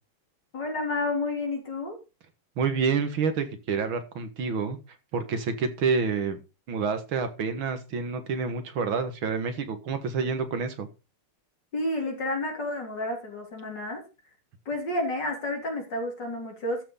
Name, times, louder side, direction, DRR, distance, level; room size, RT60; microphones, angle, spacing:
voice 1, 0.5-2.0 11.7-14.0 14.7-16.8, left 2 dB, 50° left, 2 dB, 4.1 m, -30 dB
voice 2, 2.6-4.8 5.1-6.4 6.7-10.9, right 5 dB, 65° right, 9 dB, 2.4 m, -28 dB
13.5 x 6.1 x 5.6 m, 0.30 s
omnidirectional pair, 2.4 m